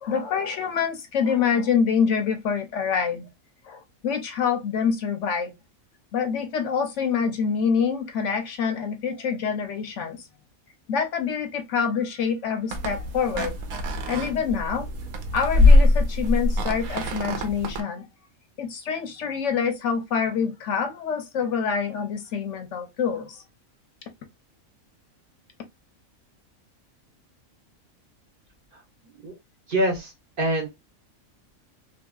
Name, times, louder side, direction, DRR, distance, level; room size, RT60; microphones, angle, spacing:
voice 1, 0.0-3.3 3.6-5.5 6.1-10.2 10.9-13.5 14.1-14.9 15.3-18.1 18.6-23.4, left 6 dB, 70° left, 0.8 m, -26 dB
sound 1, 12.7-17.8, left 2 dB, 85° right, 1.1 m, -22 dB
voice 2, 29.7-30.1 30.4-30.7, right 1 dB, 45° right, 0.9 m, -24 dB
2.8 x 2.7 x 2.2 m
omnidirectional pair, 1.4 m